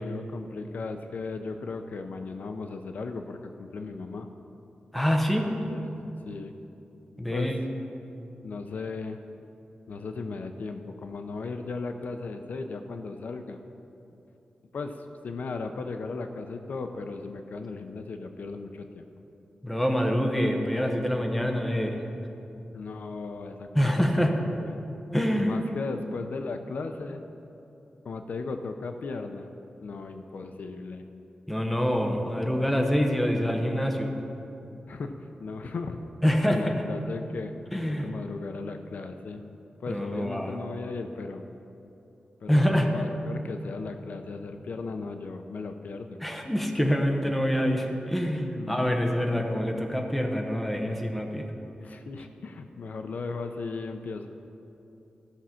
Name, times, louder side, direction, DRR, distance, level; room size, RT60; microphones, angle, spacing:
voice 1, 0.0-4.3 5.4-5.9 6.2-6.5 7.3-7.5 8.4-9.2 9.9-13.6 14.7-15.0 15.2-19.1 22.7-24.8 25.3-27.2 28.0-29.5 29.8-31.0 34.9-35.1 35.4-36.0 36.5-37.5 37.9-39.4 39.8-41.4 42.4-46.2 48.6-49.0 51.8-54.3, left 4 dB, 65° left, 7 dB, 0.6 m, -36 dB
voice 2, 4.9-5.6 7.2-7.6 19.6-22.0 23.7-24.4 25.1-25.6 31.5-34.1 36.2-36.8 37.7-38.2 39.9-40.6 42.5-42.9 46.2-51.4, equal, 5° left, 2 dB, 0.9 m, -26 dB
14.5 x 6.2 x 5.8 m, 2.9 s
wide cardioid pair, 160°, 3 cm